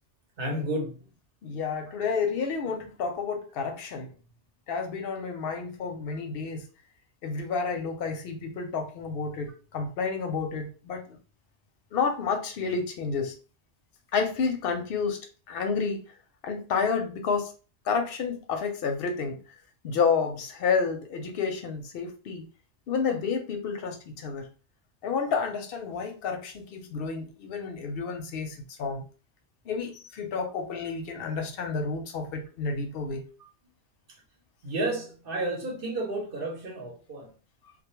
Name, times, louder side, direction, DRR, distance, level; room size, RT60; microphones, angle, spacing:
voice 1, 0.4-1.0 34.6-37.3, right 1 dB, 55° right, 0.9 m, -31 dB
voice 2, 1.4-4.1 4.7-6.7 7.2-11.2 11.9-13.3 14.1-15.2 15.5-16.1 16.4-17.5 17.8-19.4 19.8-22.5 22.9-24.5 25.0-29.1 29.7-33.3, left 5 dB, 65° left, 0.7 m, -30 dB
2.2 x 2.1 x 3.0 m
omnidirectional pair, 1.2 m